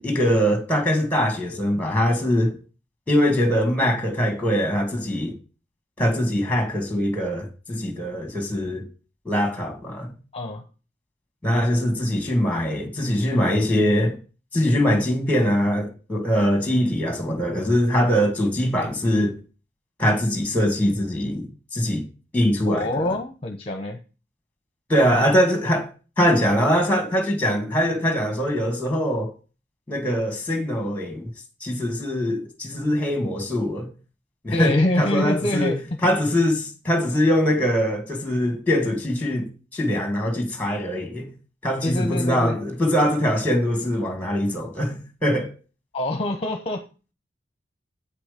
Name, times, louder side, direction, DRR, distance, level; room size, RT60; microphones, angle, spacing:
voice 1, 0.0-2.6 3.1-5.3 6.0-8.9 9.3-10.1 11.4-14.2 14.5-19.4 20.0-22.0 22.3-23.1 24.9-25.9 26.2-29.3 29.9-31.3 31.6-33.9 34.4-35.8 36.0-41.3 41.6-45.5, equal, 10° left, 1.9 m, -22 dB
voice 2, 10.3-10.6 22.6-24.0 34.5-35.8 41.8-42.6 45.9-46.8, left 1 dB, 30° left, 0.9 m, -25 dB
8.6 x 5.9 x 5.1 m
head